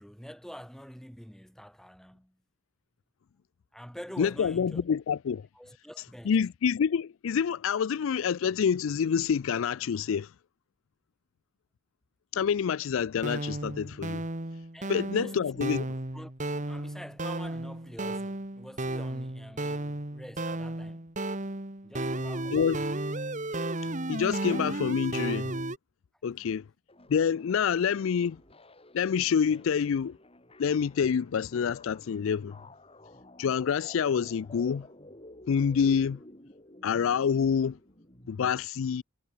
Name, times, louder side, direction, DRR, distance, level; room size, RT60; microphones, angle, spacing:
voice 1, 0.0-2.4 3.7-4.8 5.5-6.4 14.7-16.3 16.6-21.1 21.8-23.0, equal, ahead, 2.5 m, -46 dB
voice 2, 4.2-5.5 6.3-10.3 12.3-14.2 14.9-15.9 22.5-22.8 23.8-25.5 26.2-26.6 27.1-28.4 28.9-30.2 30.6-32.6 33.4-34.9 35.5-36.2 36.8-37.8 38.3-39.0, left 7 dB, 70° left, 0.4 m, -27 dB
sound 1, 13.2-25.8, right 1 dB, 35° right, 2.1 m, -34 dB
sound 2, 26.9-38.5, left 1 dB, 30° left, 5.9 m, -52 dB
head